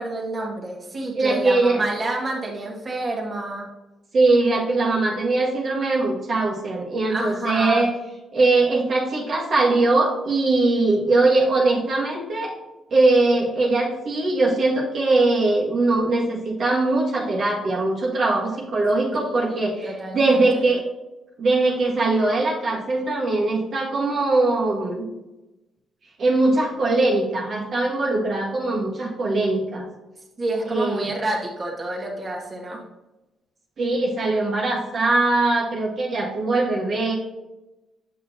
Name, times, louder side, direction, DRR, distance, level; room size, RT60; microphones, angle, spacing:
voice 1, 0.0-3.7 7.1-7.8 19.2-20.6 30.4-32.8, right 2 dB, 30° right, -2 dB, 1.6 m, -29 dB
voice 2, 1.1-1.8 4.1-7.9 8.3-12.5 12.9-19.9 20.1-20.8 21.4-25.1 26.2-29.9 30.7-31.1 33.8-37.2, right 2 dB, 50° right, -3 dB, 1.5 m, -21 dB
7.4 x 6.2 x 2.8 m, 1.0 s
cardioid pair, 90°, 0 cm